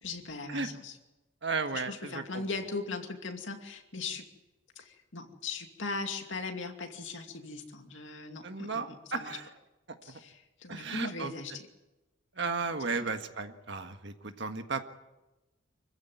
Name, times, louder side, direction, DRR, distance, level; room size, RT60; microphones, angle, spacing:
voice 1, 0.0-1.0 1.7-4.2 4.8-9.4 10.0-11.7 12.9-13.1, left 3 dB, 65° left, 4 dB, 2.5 m, -39 dB
voice 2, 1.4-2.4 8.4-9.5 10.7-11.3 12.4-14.8, right 4 dB, 55° right, 7 dB, 1.6 m, -34 dB
25.5 x 15.0 x 9.6 m, 1.1 s
head